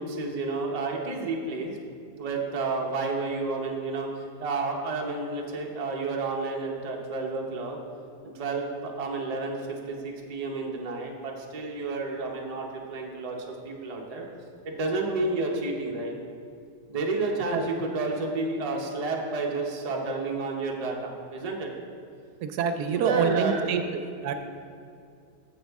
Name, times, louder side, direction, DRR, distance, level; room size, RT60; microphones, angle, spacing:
voice 1, 0.0-1.8 2.2-7.8 8.3-14.2 14.6-16.1 16.9-21.7 22.9-23.8, right 3 dB, 35° right, 0 dB, 0.7 m, -31 dB
voice 2, 22.4-23.8 24.2-24.3, right 6 dB, 75° right, 7 dB, 1.1 m, -26 dB
9.3 x 7.3 x 3.5 m, 2.4 s
omnidirectional pair, 1.7 m